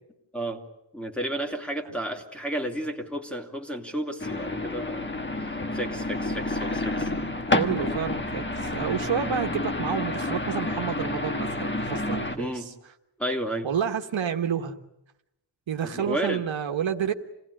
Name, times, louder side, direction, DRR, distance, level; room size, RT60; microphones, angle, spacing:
voice 1, 0.9-5.1 5.7-7.1 12.3-12.7 13.2-13.7 15.9-16.4, right 1 dB, ahead, 4 dB, 2.7 m, -32 dB
sound 1, 4.2-12.4, left 2 dB, 25° left, 1.5 m, -29 dB
voice 2, 7.5-12.7 13.6-14.8 15.7-17.1, right 8 dB, 80° right, 4 dB, 1.5 m, -29 dB
28.0 x 18.5 x 9.9 m, 0.88 s
wide cardioid pair, 140°, 45 cm